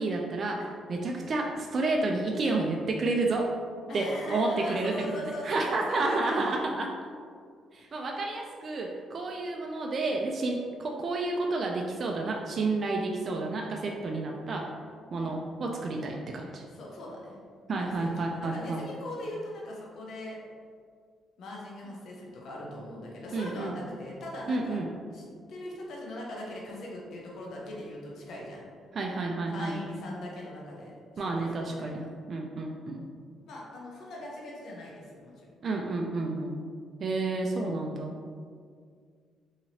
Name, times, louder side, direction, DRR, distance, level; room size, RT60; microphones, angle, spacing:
voice 1, 0.0-3.5 3.9-4.9 5.4-6.9 7.7-14.7 15.1-16.6 17.7-18.8 23.3-23.7 24.5-24.9 28.9-29.8 31.2-33.0 35.6-36.6 37.0-38.1, right 2 dB, 45° right, 0 dB, 0.3 m, -30 dB
voice 2, 3.9-6.6 7.8-8.1 15.1-15.4 16.7-17.4 17.8-20.4 21.4-24.8 25.1-28.7 29.5-32.1 33.5-35.5 37.5-37.8, left 1 dB, 70° left, -3 dB, 0.7 m, -40 dB
2.8 x 2.8 x 2.7 m, 2.1 s
cardioid pair, 90°, 0 cm